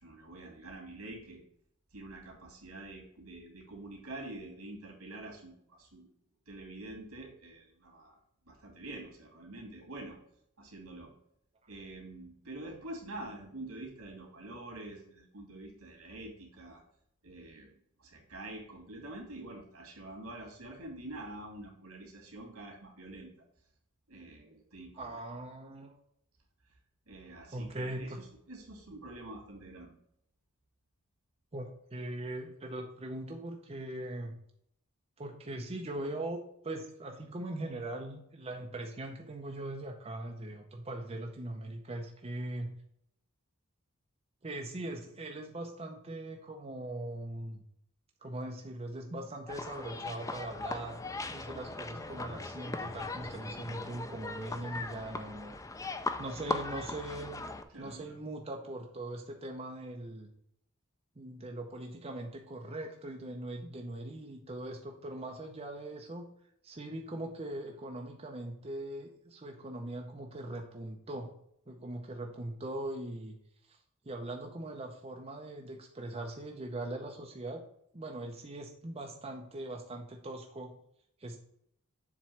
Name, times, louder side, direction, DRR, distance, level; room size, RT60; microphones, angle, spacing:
voice 1, 0.0-1.4 1.9-6.1 6.5-8.2 8.5-10.2 10.6-11.1 11.7-16.8 17.2-17.7 18.0-23.3 24.1-25.2 27.1-29.9 57.7-58.2, right 2 dB, 85° right, 0 dB, 2.5 m, -46 dB
voice 2, 25.0-26.0 27.5-28.2 31.5-34.4 35.2-42.8 44.4-47.6 48.2-51.0 51.3-55.6 56.2-57.4 57.8-60.3 61.2-66.3 66.6-71.3 71.7-73.4 73.7-73.8 74.0-77.6 77.9-80.8 81.2-81.4, right 1 dB, 30° right, 2 dB, 0.7 m, -41 dB
sound 1, 49.5-57.6, left 3 dB, 15° left, 0.4 m, -39 dB
7.4 x 3.1 x 5.7 m, 0.72 s
head